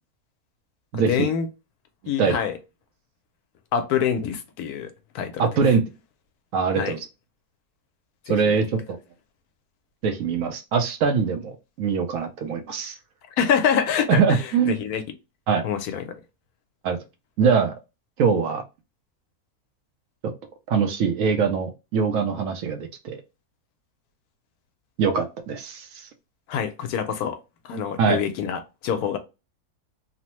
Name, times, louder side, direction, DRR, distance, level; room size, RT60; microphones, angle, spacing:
voice 1, 0.9-1.5 2.1-2.6 3.7-5.4 6.7-7.0 8.3-8.6 13.4-15.0 15.6-16.2 26.5-27.4 27.6-29.2, left 8 dB, 80° left, 1.1 m, -26 dB
voice 2, 5.4-5.8 6.5-7.0 8.3-9.0 10.0-12.9 14.1-14.7 15.5-15.6 16.8-17.0 17.4-17.7 18.2-18.6 20.7-23.2 25.0-26.1 28.0-28.2, right 6 dB, 70° right, 0.9 m, -22 dB
3.1 x 2.0 x 2.9 m
omnidirectional pair, 1.6 m